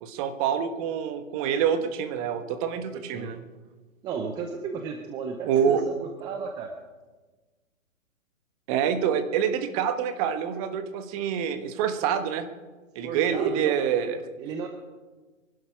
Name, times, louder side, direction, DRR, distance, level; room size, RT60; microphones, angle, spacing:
voice 1, 0.0-3.4 5.4-5.8 8.7-12.5 12.9-14.2, right 8 dB, 25° right, 9 dB, 1.4 m, -26 dB
voice 2, 2.7-3.3 4.0-6.7 13.0-14.1 14.4-14.7, right 5 dB, 10° right, 5 dB, 0.6 m, -35 dB
23.5 x 11.5 x 4.9 m, 1.3 s
hypercardioid pair, 135°, 40 cm